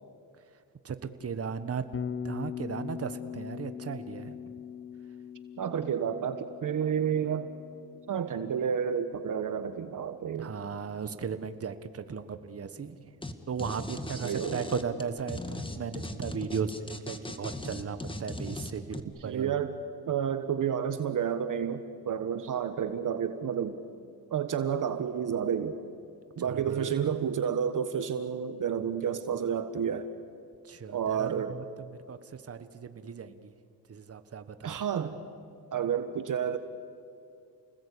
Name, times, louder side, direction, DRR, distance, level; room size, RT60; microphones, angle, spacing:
voice 1, 0.8-1.9 2.2-4.4 10.4-13.0 13.5-19.6 26.5-26.9 30.7-31.6 32.1-32.2 32.5-33.5 33.9-34.8, right 6 dB, 40° right, 10 dB, 1.5 m, -36 dB
Bass guitar, 1.9-10.0, left 8 dB, 35° left, 1.2 m, -42 dB
voice 2, 5.6-7.5 8.1-10.5 14.2-14.6 19.2-19.8 20.1-23.8 24.3-25.8 26.4-30.1 30.9-31.6 34.6-35.2 35.7-36.6, right 8 dB, 55° right, 9 dB, 1.3 m, -30 dB
sound 1, 13.2-13.3 13.6-19.0, left 2 dB, 15° left, 1.9 m, -38 dB
29.5 x 19.5 x 8.6 m, 2.5 s
cardioid pair, 85°, 38 cm